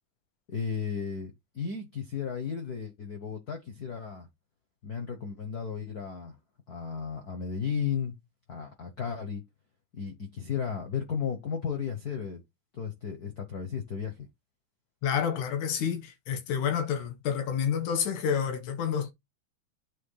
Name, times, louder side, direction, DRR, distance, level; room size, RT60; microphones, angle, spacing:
voice 1, 0.5-4.3 4.8-6.3 6.7-8.2 8.5-9.4 9.9-12.4 12.7-14.3, left 6 dB, 70° left, 0.9 m, -34 dB
voice 2, 15.0-19.1, left 7 dB, 85° left, 2.6 m, -29 dB
7.6 x 3.0 x 5.6 m
omnidirectional pair, 3.4 m